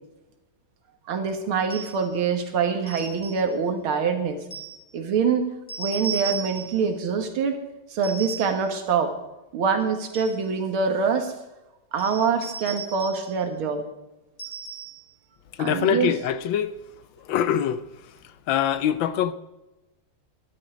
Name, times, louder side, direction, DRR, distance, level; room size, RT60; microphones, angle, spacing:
voice 1, 1.1-4.4 4.9-5.4 5.8-7.6 7.9-9.1 9.5-11.3 11.9-13.8 15.6-16.1, right 5 dB, 80° right, 2.3 m, -25 dB
sound 1, 1.7-2.1 2.9-3.5 4.5-4.8 5.7-6.9 8.0-8.7 9.8-10.5 12.0-13.3 14.4-15.1, right 5 dB, 15° left, 3.4 m, -36 dB
voice 2, 15.6-16.7 17.3-17.8 18.5-19.3, left 9 dB, 75° left, 1.3 m, -23 dB
12.0 x 11.5 x 5.0 m
omnidirectional pair, 2.3 m